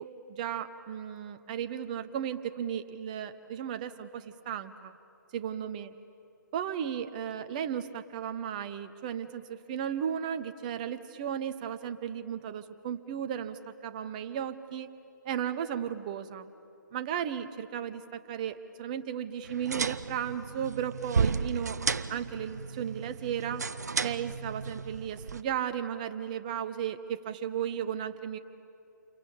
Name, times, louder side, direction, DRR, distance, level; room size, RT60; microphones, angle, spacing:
voice 1, 0.0-5.0 5.3-5.9 6.5-14.9 15.2-16.5 16.9-21.8 22.1-23.6 24.0-28.4, right 9 dB, 25° right, 10 dB, 0.9 m, -35 dB
sound 1, 19.4-25.4, right 5 dB, 55° right, 0.8 m, -33 dB
29.0 x 24.0 x 8.6 m, 2.8 s
figure-of-eight pair, 145°, 11 cm